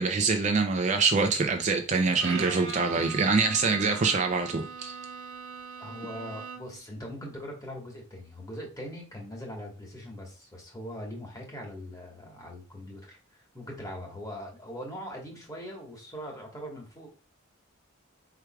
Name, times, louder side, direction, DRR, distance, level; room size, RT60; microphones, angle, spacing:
voice 1, 0.0-5.0, right 4 dB, 35° right, 0.4 m, -25 dB
Bowed string instrument, 2.2-6.9, right 5 dB, 65° right, 1.1 m, -40 dB
voice 2, 5.8-13.2 13.5-17.1, equal, 15° left, 1.3 m, -41 dB
4.7 x 4.6 x 2.2 m
head